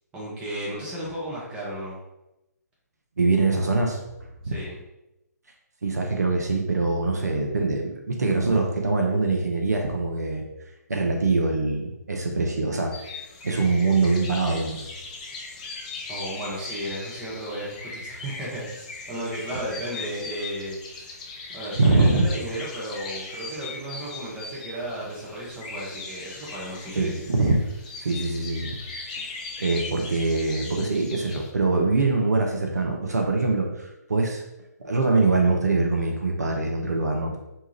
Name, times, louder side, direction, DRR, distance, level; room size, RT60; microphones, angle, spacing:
voice 1, 0.1-2.0 4.4-4.8 16.1-21.1 21.5-27.1, right 1 dB, 10° right, -6 dB, 0.7 m, -34 dB
voice 2, 3.2-4.0 4.4-4.5 5.8-10.4 10.9-12.9 13.4-14.8 21.8-22.3 26.9-27.6 28.0-28.8 29.2-34.4 34.8-37.4, right 3 dB, 65° right, 1 dB, 0.5 m, -23 dB
sound 1, 12.9-31.5, left 3 dB, 25° left, 0.3 m, -39 dB
2.7 x 2.2 x 3.2 m, 0.90 s
figure-of-eight pair, 135°, 9 cm